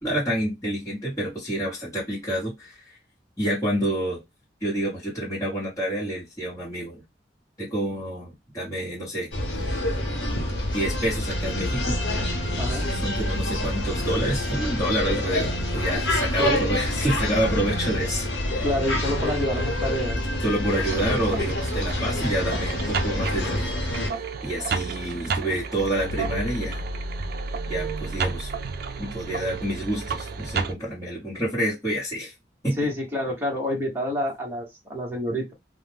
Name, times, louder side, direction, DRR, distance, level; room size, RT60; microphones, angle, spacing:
voice 1, 0.0-2.7 3.4-4.2 4.6-7.0 7.6-9.3 10.7-12.0 13.0-18.6 20.4-24.2 24.4-26.8 27.7-28.5 29.0-32.3 32.6-32.9, right 1 dB, 20° left, 1.1 m, -28 dB
sound 1, 9.3-24.1, left 1 dB, 75° left, 1.0 m, -27 dB
voice 2, 18.6-20.2 32.8-35.5, left 1 dB, 10° right, 1.0 m, -28 dB
sound 2, 20.7-30.7, right 4 dB, 55° right, 0.4 m, -31 dB
2.3 x 2.2 x 3.3 m
head